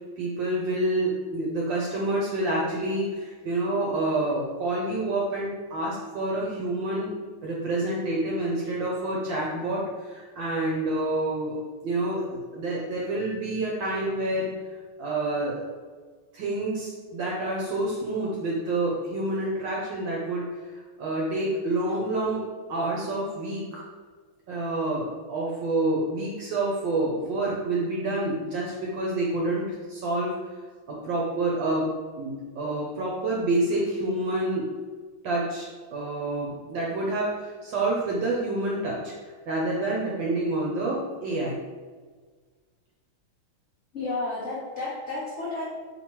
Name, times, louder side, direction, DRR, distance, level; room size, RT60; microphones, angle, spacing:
voice 1, 0.2-7.1 7.4-11.6 11.8-14.5 15.0-15.7 16.3-23.8 24.5-29.6 29.9-30.3 30.9-31.9 32.2-34.7 35.2-41.6, right 2 dB, 70° right, -4 dB, 1.2 m, -28 dB
voice 2, 43.9-45.6, left 2 dB, 80° left, -8 dB, 0.6 m, -31 dB
4.4 x 3.4 x 3.0 m, 1.5 s
omnidirectional pair, 2.4 m